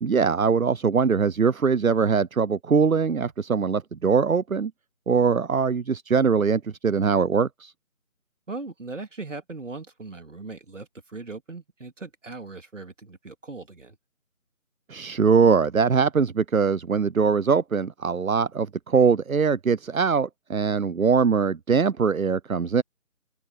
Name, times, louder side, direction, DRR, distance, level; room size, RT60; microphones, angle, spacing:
voice 1, 0.0-4.7 5.1-7.7 14.9-22.8, right 5 dB, 80° right, 0.8 m, -22 dB
voice 2, 8.5-14.0, right 3 dB, 60° right, 3.4 m, -39 dB
open air
figure-of-eight pair, 160°, 42 cm